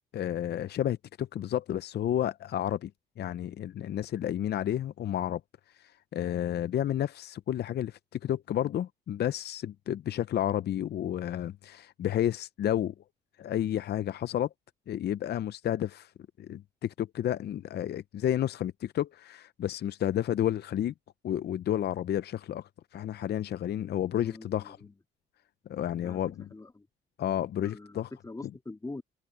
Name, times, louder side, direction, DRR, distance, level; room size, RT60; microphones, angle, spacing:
voice 1, 0.1-2.9 3.2-5.4 5.8-12.9 13.4-14.5 14.9-16.1 16.4-20.9 21.2-24.8 25.7-26.5 27.2-28.1, left 11 dB, 55° left, 0.6 m, -31 dB
voice 2, 24.1-24.9 26.0-26.2 26.5-26.9 27.6-29.0, left 2 dB, 15° left, 2.9 m, -44 dB
cardioid pair, 90°, 20 cm